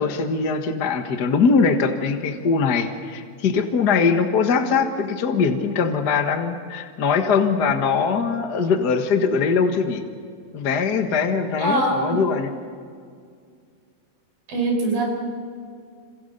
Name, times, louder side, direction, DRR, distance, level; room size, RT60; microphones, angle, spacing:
voice 1, 0.0-10.0 10.5-12.5, left 5 dB, 50° left, 5 dB, 1.2 m, -21 dB
voice 2, 11.6-12.2 14.5-15.1, right 2 dB, 85° right, 2 dB, 7.1 m, -22 dB
28.0 x 27.5 x 6.7 m, 2.2 s
omnidirectional pair, 3.9 m